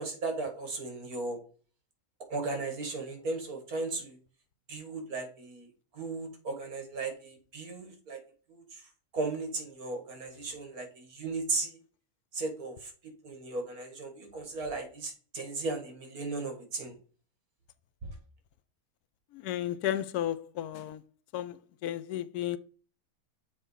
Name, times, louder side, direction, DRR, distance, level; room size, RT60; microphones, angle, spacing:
voice 1, 0.0-1.4 2.3-4.2 4.7-5.7 5.9-8.2 8.7-8.8 9.1-11.7 12.3-12.9 13.2-16.9, right 3 dB, 70° right, 2.2 m, -36 dB
voice 2, 19.4-21.0 21.3-21.6 21.8-22.6, left 12 dB, 85° left, 1.1 m, -33 dB
7.1 x 3.5 x 5.5 m
omnidirectional pair, 1.6 m